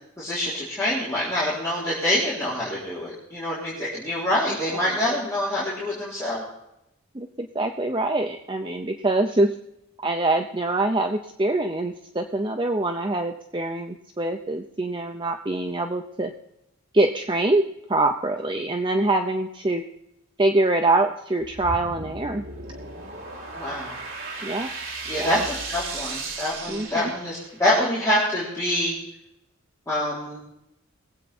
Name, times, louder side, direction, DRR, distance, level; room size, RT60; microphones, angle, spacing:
voice 1, 0.2-6.4 23.5-24.0 25.1-29.0 29.9-30.4, left 1 dB, 15° left, -9 dB, 3.7 m, -26 dB
voice 2, 4.7-5.2 7.1-9.6 10.0-16.3 16.9-17.6 17.9-19.8 20.4-22.4 24.4-24.7 25.2-25.4 26.7-27.1, right 2 dB, 20° right, 4 dB, 0.7 m, -24 dB
sound 1, 21.4-27.7, right 3 dB, 55° right, 2.9 m, -35 dB
21.5 x 8.3 x 4.3 m, 0.84 s
head